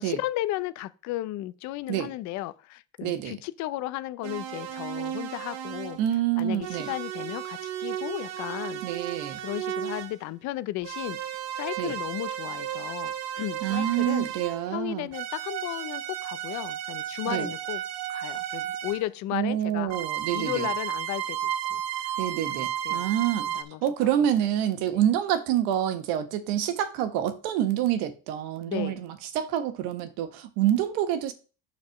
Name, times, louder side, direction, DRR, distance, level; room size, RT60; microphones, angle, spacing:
voice 1, 0.0-6.0 6.4-8.8 9.4-11.2 11.6-14.3 14.7-17.8 18.1-20.0 20.3-22.1 22.8-23.1 23.5-24.1 24.9-25.0 28.7-29.0, left 16 dB, 55° left, 0.6 m, -34 dB
voice 2, 3.0-3.4 6.0-6.9 8.8-9.4 11.8-12.0 13.6-15.1 17.3-17.5 19.3-20.7 22.2-31.3, right 11 dB, 80° right, 1.4 m, -27 dB
sound 1, 4.2-6.1 6.6-10.2 10.8-14.7 15.1-19.1 19.9-23.6, right 11 dB, 50° right, 1.1 m, -33 dB
7.3 x 4.1 x 6.4 m
cardioid pair, 165°, 35 cm